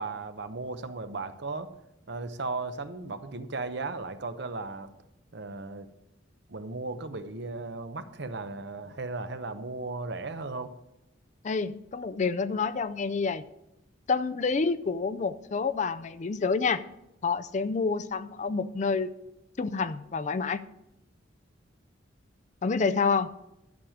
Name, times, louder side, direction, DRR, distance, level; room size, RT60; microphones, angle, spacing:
voice 1, 0.0-1.7 2.1-4.9 5.3-5.9 6.5-10.7, right 3 dB, 60° right, 10 dB, 0.8 m, -36 dB
voice 2, 11.4-13.4 14.1-16.8 17.2-19.1 19.6-20.6 22.6-23.3, left 4 dB, 40° left, 13 dB, 0.4 m, -28 dB
12.0 x 7.3 x 4.9 m, 0.87 s
head